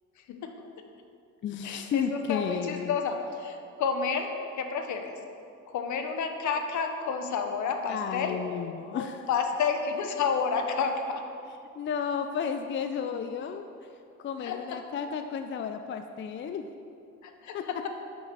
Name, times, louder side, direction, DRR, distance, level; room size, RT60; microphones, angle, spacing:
voice 1, 0.3-0.7 1.6-5.2 5.7-8.4 8.9-11.2 14.4-14.8 17.2-17.9, left 5 dB, 70° left, 5 dB, 0.8 m, -30 dB
voice 2, 1.4-3.0 7.9-9.2 11.8-13.7 14.2-16.7 17.5-17.9, left 7 dB, 40° left, 7 dB, 0.4 m, -32 dB
5.9 x 5.4 x 6.1 m, 2.5 s
cardioid pair, 90°, 30 cm